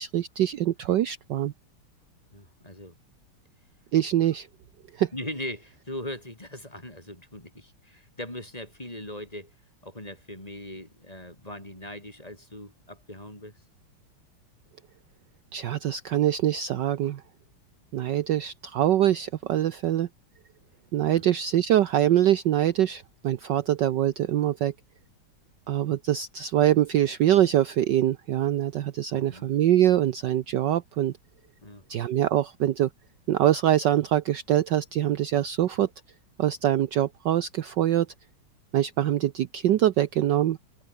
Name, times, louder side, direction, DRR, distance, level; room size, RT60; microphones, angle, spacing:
voice 1, 0.0-1.5 3.9-4.5 5.0-5.1 15.5-17.2 17.9-20.1 20.9-24.7 25.7-31.1 31.9-32.9 33.3-35.9 36.4-38.1 38.7-40.6, right 12 dB, 65° right, 1.3 m, -24 dB
voice 2, 2.3-3.0 5.1-9.6 9.8-13.6 21.1-21.2 29.1-29.5 31.6-31.8, left 1 dB, 15° left, 5.6 m, -40 dB
omnidirectional pair, 2.3 m